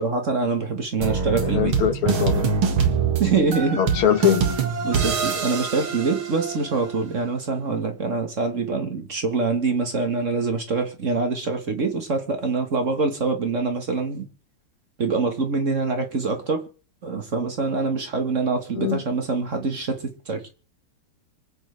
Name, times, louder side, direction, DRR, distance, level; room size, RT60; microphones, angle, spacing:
voice 1, 0.0-1.7 3.2-3.8 4.8-14.3 15.0-16.6 17.0-20.5, right 4 dB, 40° right, 1.6 m, -25 dB
sound 1, 1.0-6.8, right 5 dB, 75° right, 2.6 m, -24 dB
voice 2, 1.4-2.5 3.8-4.5 18.7-19.0, left 9 dB, 80° left, 2.1 m, -22 dB
25.5 x 8.8 x 3.3 m
omnidirectional pair, 2.3 m